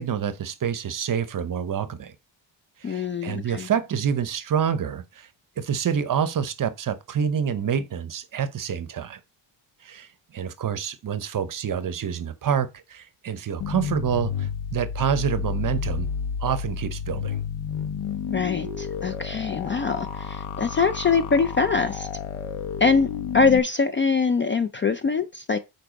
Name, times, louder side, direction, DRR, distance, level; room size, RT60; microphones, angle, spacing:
voice 1, 0.0-2.1 2.8-5.3 5.6-9.2 9.8-16.1 16.4-17.3, right 8 dB, 40° right, 0.8 m, -27 dB
voice 2, 2.8-3.7 18.3-22.1 22.8-23.1 23.3-25.6, left 5 dB, 25° left, 0.4 m, -23 dB
sound 1, 13.6-23.6, left 7 dB, 90° left, 1.2 m, -31 dB
7.6 x 4.6 x 5.1 m
cardioid pair, 135°, 49 cm